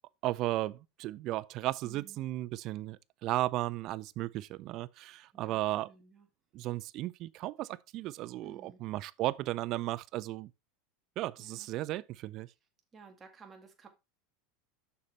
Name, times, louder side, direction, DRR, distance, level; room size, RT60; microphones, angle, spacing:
voice 1, 0.2-5.9 6.5-10.5 11.2-12.5, right 16 dB, 50° right, 0.5 m, -35 dB
voice 2, 1.8-2.2 5.3-6.3 8.4-8.8 11.4-11.7 12.9-13.9, right 5 dB, 20° right, 2.0 m, -55 dB
7.0 x 6.5 x 3.3 m
supercardioid pair, 125°, 0 cm